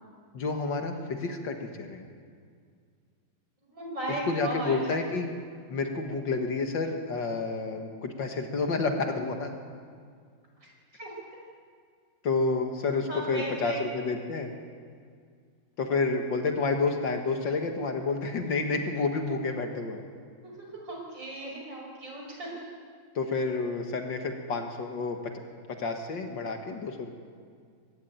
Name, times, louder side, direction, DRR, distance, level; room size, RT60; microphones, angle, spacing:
voice 1, 0.3-2.0 4.2-5.4 5.7-9.5 12.2-14.5 15.8-20.0 23.2-25.3 25.7-27.1, left 3 dB, 65° left, 4 dB, 2.2 m, -29 dB
voice 2, 3.7-4.8 10.9-11.1 13.1-13.8 20.4-22.6, right 1 dB, 65° right, -2 dB, 6.2 m, -36 dB
23.0 x 13.0 x 9.3 m, 2.1 s
omnidirectional pair, 2.1 m